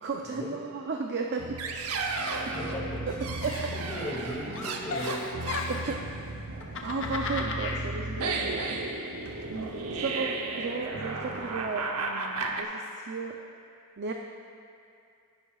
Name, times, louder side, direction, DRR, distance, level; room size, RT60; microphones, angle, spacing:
voice 1, 0.0-2.0 3.4-3.7 5.7-6.0 6.8-8.6 9.5-13.4 14.0-14.1, right 4 dB, 50° right, 2 dB, 0.5 m, -34 dB
sound 1, 1.4-12.6, right 3 dB, 80° right, 0.8 m, -34 dB
voice 2, 2.0-5.3 5.6-5.7, equal, 25° left, -6 dB, 2.1 m, -38 dB
Giggle, 3.4-4.3 4.5-6.0 6.6-7.8, left 4 dB, 60° left, 0.8 m, -35 dB
15.0 x 10.5 x 2.4 m, 2.4 s
head